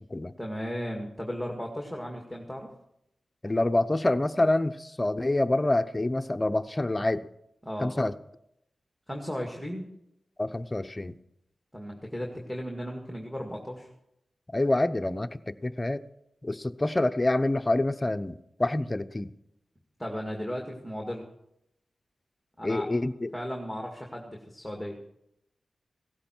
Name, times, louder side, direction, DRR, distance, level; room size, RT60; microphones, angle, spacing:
voice 1, 0.4-2.7 7.6-7.9 9.1-9.9 11.7-13.9 20.0-21.3 22.6-22.9 23.3-25.0, equal, ahead, 1 dB, 2.0 m, -35 dB
voice 2, 3.4-7.3 7.8-8.1 10.4-11.1 14.5-15.3 15.6-16.0 16.4-19.3 22.6-23.3, left 2 dB, 20° left, 10 dB, 0.7 m, -26 dB
17.0 x 14.0 x 4.5 m, 0.79 s
wide cardioid pair, 85°, 0 cm